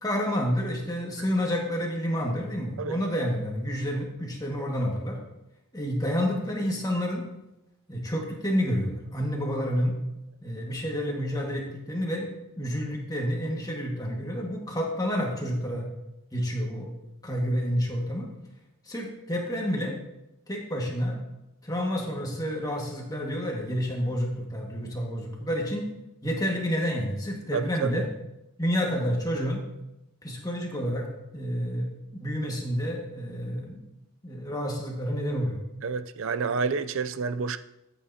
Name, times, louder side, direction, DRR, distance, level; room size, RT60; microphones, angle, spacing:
voice 1, 0.0-5.2 5.7-7.2 7.9-9.9 10.4-12.3 12.6-15.9 16.3-16.9 17.2-18.3 18.9-20.0 20.5-21.2 21.6-25.9 26.2-28.1 28.6-29.6 30.2-31.1 31.3-33.8 34.2-35.6, equal, 15° left, 1.7 m, -29 dB
voice 2, 27.5-28.0 35.8-37.6, right 5 dB, 60° right, 0.4 m, -29 dB
13.0 x 8.4 x 2.8 m
head